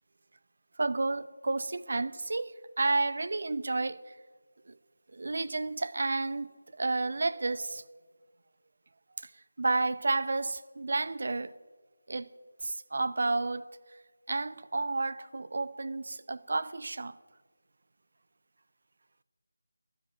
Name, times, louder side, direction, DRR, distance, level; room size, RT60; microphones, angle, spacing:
voice 1, 0.8-4.0 4.7-4.8 5.1-6.5 6.8-7.8 9.6-11.5 12.1-12.3 12.6-13.7 14.3-17.2, right 3 dB, 55° right, 0.7 m, -31 dB
13.0 x 11.5 x 9.2 m
figure-of-eight pair, 165°, 0 cm